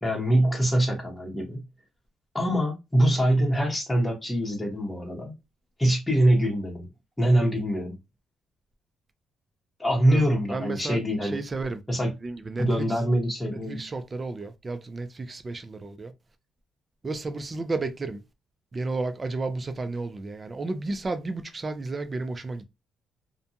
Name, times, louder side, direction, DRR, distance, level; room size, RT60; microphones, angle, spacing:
voice 1, 0.0-1.6 2.3-5.3 5.8-6.9 7.2-8.0 9.8-11.4 11.9-12.1 12.6-13.9, right 1 dB, 10° left, 1.0 m, -24 dB
voice 2, 10.1-11.8 12.2-12.9 13.5-16.1 17.0-18.2 18.7-22.6, right 3 dB, 30° right, 0.5 m, -32 dB
2.5 x 2.2 x 2.7 m
cardioid pair, 90°, 0 cm